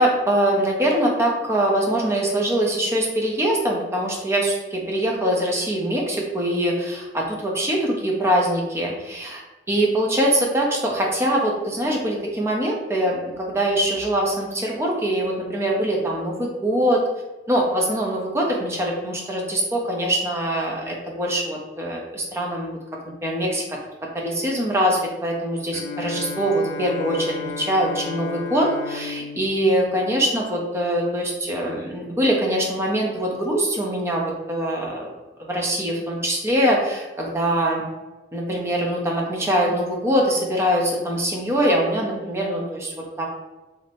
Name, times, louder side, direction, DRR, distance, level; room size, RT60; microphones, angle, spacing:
voice 1, 0.0-9.4 9.7-17.0 17.5-22.7 23.2-23.6 24.1-35.1 35.5-37.8 38.3-43.3, right 1 dB, 15° right, -2 dB, 0.6 m, -23 dB
Bowed string instrument, 25.7-31.0, left 5 dB, 80° left, 0.3 m, -35 dB
2.7 x 2.5 x 3.3 m, 1.1 s
head